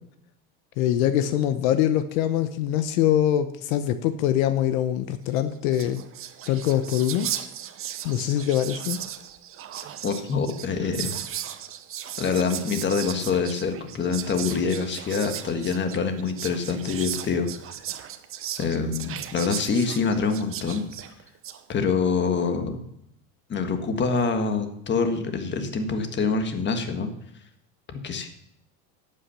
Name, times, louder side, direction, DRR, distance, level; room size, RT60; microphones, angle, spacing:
voice 1, 0.8-6.0 6.5-7.3 8.0-9.0, left 11 dB, 75° left, 11 dB, 1.0 m, -23 dB
Whispering, 5.4-5.5 5.6-21.6, right 10 dB, 30° right, 0.9 m, -36 dB
voice 2, 10.0-11.2 12.2-17.5 18.6-20.8 21.7-22.8 23.5-27.1 27.9-28.3, left 5 dB, 25° left, 7 dB, 1.5 m, -25 dB
11.0 x 8.8 x 5.7 m, 0.78 s
supercardioid pair, 125°, 41 cm